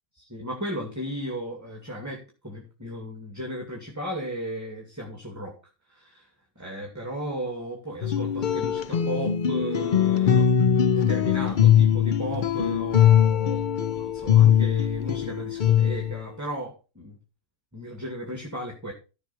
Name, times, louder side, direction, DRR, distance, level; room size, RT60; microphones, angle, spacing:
voice 1, 0.2-5.6 5.9-6.3 6.6-10.5 10.9-17.2 17.7-18.9, equal, 10° right, 0 dB, 2.4 m, -35 dB
sound 1, 8.0-16.2, left 9 dB, 60° left, 0.5 m, -21 dB
15.0 x 5.9 x 4.3 m, 0.32 s
omnidirectional pair, 1.6 m